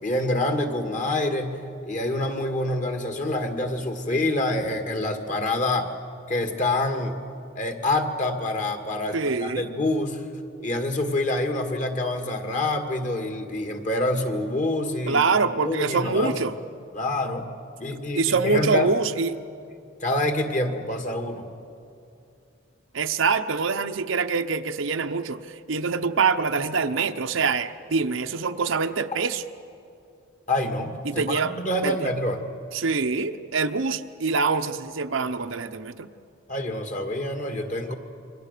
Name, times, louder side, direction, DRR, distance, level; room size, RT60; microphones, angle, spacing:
voice 1, 0.0-1.6 1.8-5.9 6.3-7.2 7.6-10.2 10.6-15.2 15.6-16.4 16.9-17.5 17.8-18.9 20.0-21.5 30.5-32.4 36.5-37.9, left 1 dB, 40° left, 5 dB, 2.0 m, -26 dB
voice 2, 9.1-9.7 15.1-16.5 18.1-19.4 22.9-25.4 25.7-29.4 31.0-31.5 31.8-31.9 32.7-36.1, right 4 dB, 75° right, 8 dB, 0.9 m, -25 dB
27.5 x 23.5 x 6.8 m, 2.5 s
head